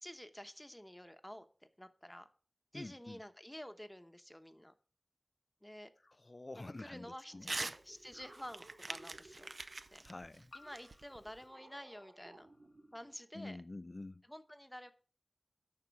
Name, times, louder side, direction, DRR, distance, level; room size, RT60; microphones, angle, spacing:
voice 1, 0.0-1.5 1.8-2.3 2.7-4.7 5.6-5.9 6.5-9.5 9.9-10.0 10.5-12.5 12.9-13.6 14.3-14.9, equal, 10° left, 0.9 m, -50 dB
voice 2, 2.7-3.2 6.0-7.5 10.0-10.5 13.3-14.2, left 2 dB, 40° left, 0.4 m, -48 dB
sound 1, 7.3-10.0 10.6-13.3, right 2 dB, 80° right, 2.5 m, -60 dB
Crumpling crinkling / Tearing, 7.4-7.8 8.1-11.4, right 2 dB, 60° right, 0.6 m, -44 dB
sound 2, 10.5-13.0, left 3 dB, 70° left, 0.7 m, -62 dB
11.5 x 4.4 x 6.9 m
wide cardioid pair, 70°, 0 cm